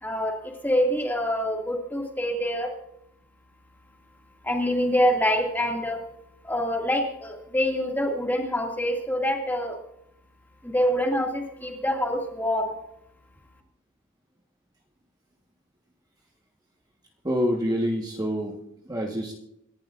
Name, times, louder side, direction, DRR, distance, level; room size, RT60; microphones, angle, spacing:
voice 1, 0.0-2.7 4.4-6.0 6.4-9.8 10.6-12.7, equal, 10° left, 1 dB, 2.2 m, -25 dB
voice 2, 17.2-18.6 18.9-19.3, equal, 20° right, 0 dB, 1.3 m, -26 dB
27.0 x 12.0 x 2.5 m, 0.76 s
head